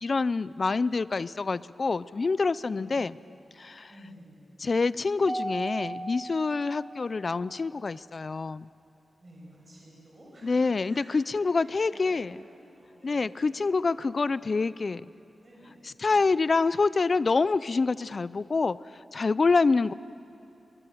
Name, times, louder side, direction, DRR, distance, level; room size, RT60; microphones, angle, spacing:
voice 1, 0.0-3.1 3.6-3.9 4.6-8.7 10.4-12.4 13.0-15.0 16.0-19.9, left 4 dB, 40° left, 18 dB, 0.4 m, -26 dB
voice 2, 2.6-3.1 3.9-4.6 9.2-10.5 10.8-11.2 11.5-14.0 14.2-14.6 15.1-15.8 16.0-16.3, equal, 35° right, -4 dB, 6.3 m, -52 dB
Mallet percussion, 5.3-7.7, right 1 dB, 15° right, 1.1 m, -37 dB
23.0 x 21.0 x 7.8 m, 2.8 s
wide cardioid pair, 130°, 0 cm